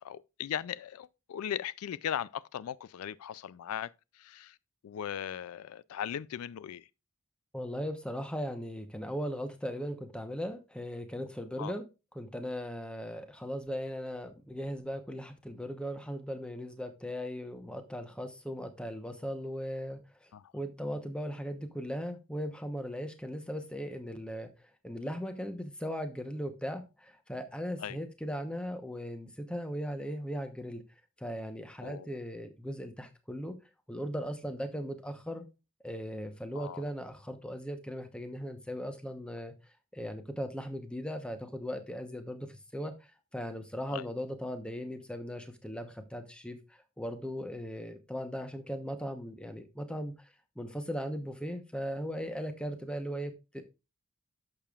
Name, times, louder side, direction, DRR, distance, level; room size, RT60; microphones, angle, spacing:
voice 1, 0.0-4.6 4.8-6.9 11.6-11.7 20.3-20.5 27.8-28.0 31.8-32.1 36.5-36.8 43.9-44.1, left 9 dB, 85° left, 0.3 m, -38 dB
voice 2, 7.5-11.8 12.1-30.8 31.2-33.5 33.9-35.5 35.8-39.5 39.9-42.9 43.3-53.6, equal, 5° left, 0.9 m, -38 dB
11.0 x 6.9 x 2.4 m
head